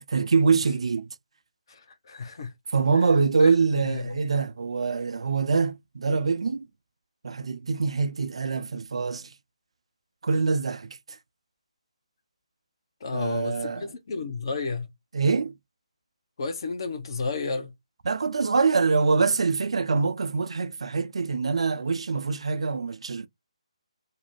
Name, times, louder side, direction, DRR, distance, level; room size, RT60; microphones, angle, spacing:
voice 1, 0.1-1.1 2.7-6.7 7.2-9.3 10.2-11.2 13.1-13.9 15.1-15.6 18.1-23.3, right 4 dB, 60° right, 0.3 m, -24 dB
voice 2, 1.7-2.5 3.4-4.2 13.0-14.9 16.4-17.7, left 4 dB, 45° left, 0.6 m, -32 dB
2.4 x 2.1 x 3.1 m
figure-of-eight pair, 145°, 3 cm